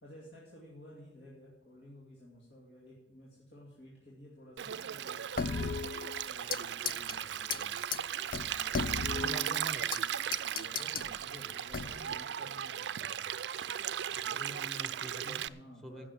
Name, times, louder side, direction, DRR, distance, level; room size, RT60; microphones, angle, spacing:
voice 1, 0.0-5.5 6.2-7.8 8.5-9.3 10.5-13.3 14.1-14.5 15.1-16.1, left 1 dB, 65° left, -4 dB, 2.4 m, -53 dB
Stream, 4.6-15.5, right 9 dB, 65° right, 0.4 m, -37 dB
sound 1, 5.4-6.6 6.9-7.1 7.5-7.6 7.9-8.0 8.3-10.0 10.3-11.1 11.7-12.1, left 5 dB, 45° left, 0.4 m, -36 dB
voice 2, 9.1-10.1 14.5-15.4 15.8-16.1, right 1 dB, 5° left, 9 dB, 1.1 m, -46 dB
15.5 x 6.2 x 7.8 m, 1.0 s
head